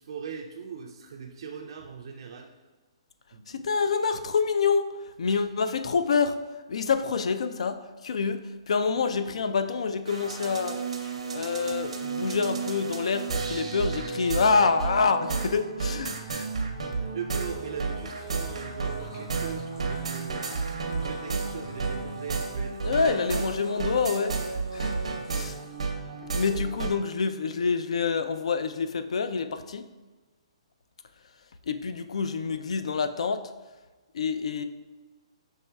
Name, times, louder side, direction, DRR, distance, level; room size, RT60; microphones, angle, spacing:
voice 1, 0.0-2.5 3.3-3.6 5.3-5.4 16.9-23.0 23.4-23.5 25.2-25.5 26.1-26.6, right 6 dB, 50° right, 2 dB, 0.3 m, -40 dB
voice 2, 3.5-6.4 6.7-16.5 22.8-25.0 25.3-25.6 26.3-29.9 31.7-33.4 34.1-34.6, left 5 dB, 75° left, 10 dB, 0.3 m, -27 dB
sound 1, 10.1-26.9, right 4 dB, 85° right, 0.6 m, -32 dB
sound 2, 13.3-22.4, right 1 dB, 10° left, 0.5 m, -47 dB
Splash splatter, 17.0-26.0, left 1 dB, 40° left, 1.4 m, -52 dB
5.5 x 3.1 x 2.2 m, 1.3 s
hypercardioid pair, 160°, 3 cm